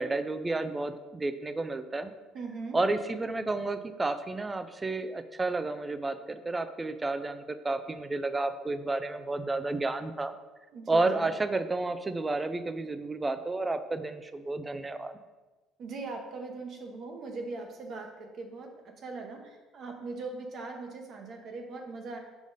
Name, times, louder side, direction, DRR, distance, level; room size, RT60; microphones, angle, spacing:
voice 1, 0.0-2.1 2.7-10.3 10.9-15.1, right 2 dB, 15° right, 10 dB, 0.3 m, -31 dB
voice 2, 2.3-2.8 10.7-11.3 15.8-18.7 19.0-22.2, right 3 dB, 45° right, 3 dB, 0.9 m, -40 dB
5.1 x 5.0 x 4.0 m, 1.2 s
cardioid pair, 150°, 0 cm